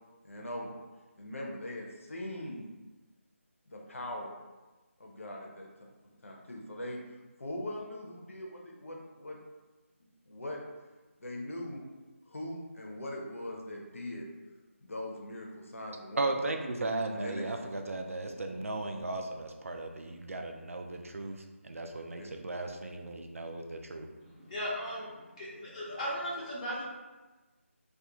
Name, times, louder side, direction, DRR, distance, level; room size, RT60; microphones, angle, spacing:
voice 1, 0.2-0.7 1.2-2.7 3.7-4.3 5.0-5.7 6.2-7.0 7.4-9.4 10.3-10.6 11.2-11.8 12.3-14.3 14.8-16.3 17.1-17.5 22.2-22.3, left 1 dB, 70° left, -1 dB, 0.6 m, -41 dB
voice 2, 16.2-21.4 21.6-24.1, right 2 dB, 75° right, 3 dB, 0.4 m, -36 dB
voice 3, 24.2-26.8, equal, 30° left, -7 dB, 0.8 m, -37 dB
2.4 x 2.2 x 2.9 m, 1.2 s
figure-of-eight pair, 165°, 8 cm